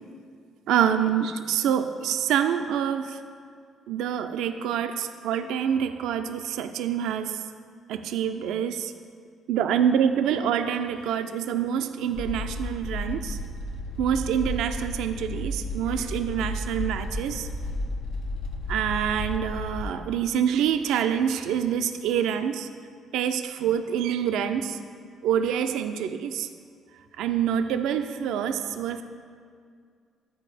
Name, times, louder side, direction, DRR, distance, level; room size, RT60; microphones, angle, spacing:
voice 1, 0.7-3.2 3.9-7.4 7.9-8.9 9.5-13.4 14.0-17.5 18.7-22.7 23.1-24.8 25.2-26.5 27.2-29.0, right 9 dB, 80° right, 8 dB, 0.3 m, -26 dB
sound 1, 12.1-19.9, left 1 dB, 80° left, 0.7 m, -33 dB
9.3 x 4.3 x 4.9 m, 2.2 s
supercardioid pair, 60°, 0 cm